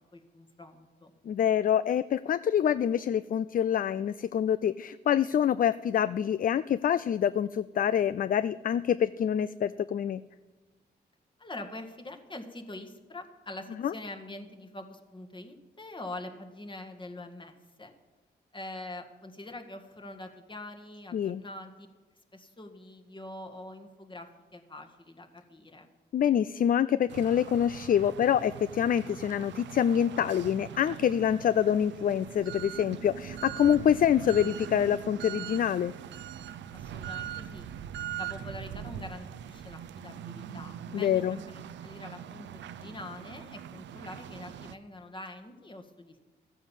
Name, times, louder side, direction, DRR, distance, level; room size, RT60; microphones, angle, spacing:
voice 1, 0.1-1.1 11.4-17.9 18.5-21.9 22.3-25.9 36.7-37.7 38.2-46.2, left 2 dB, 25° left, 5 dB, 1.8 m, -44 dB
voice 2, 1.3-10.2 13.8-13.9 21.1-21.4 26.1-35.9 40.9-41.4, left 9 dB, 50° left, 16 dB, 0.4 m, -26 dB
sound 1, 27.1-44.7, right 10 dB, 90° right, 0.6 m, -42 dB
14.0 x 9.2 x 7.3 m, 1.2 s
cardioid pair, 70°, 18 cm